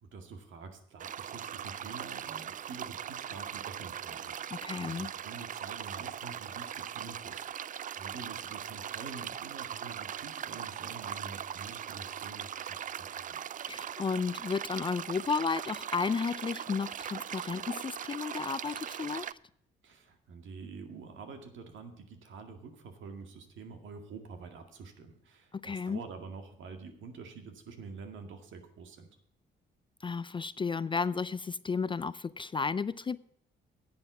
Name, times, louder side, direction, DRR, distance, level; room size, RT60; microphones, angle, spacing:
voice 1, 0.0-7.7 8.0-13.4 19.8-29.1, right 4 dB, 75° right, 2.1 m, -47 dB
sound 1, 1.0-19.3, right 9 dB, 40° right, 0.4 m, -40 dB
voice 2, 4.5-5.1 13.7-19.3 25.5-26.0 30.0-33.2, left 5 dB, 25° left, 0.4 m, -33 dB
10.5 x 7.9 x 6.0 m
cardioid pair, 90°, 20 cm